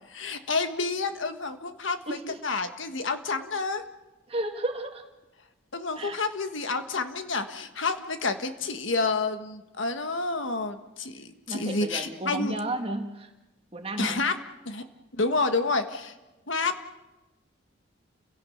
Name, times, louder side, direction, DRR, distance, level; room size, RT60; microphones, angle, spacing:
voice 1, 0.1-2.2 2.4-3.8 5.7-12.5 14.0-14.3 14.6-14.8 15.1-16.1 16.5-16.7, left 3 dB, 70° left, 8 dB, 1.5 m, -29 dB
voice 2, 2.1-2.4 4.3-5.0 6.0-6.2 11.5-13.3 13.7-14.2, right 1 dB, 30° right, 4 dB, 1.8 m, -32 dB
30.0 x 17.0 x 6.6 m, 1.1 s
head